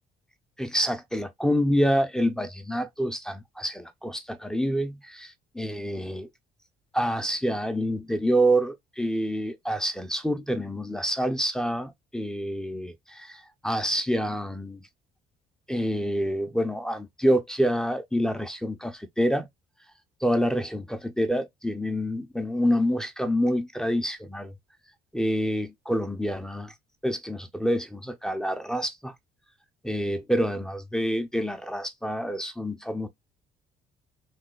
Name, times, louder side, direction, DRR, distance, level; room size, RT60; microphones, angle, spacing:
voice 1, 0.6-6.3 6.9-14.8 15.7-19.5 20.2-24.5 25.1-26.7 27.0-29.1 29.8-33.1, equal, 5° left, 0.5 m, -27 dB
3.2 x 2.3 x 3.8 m
cardioid pair, 110°, 17 cm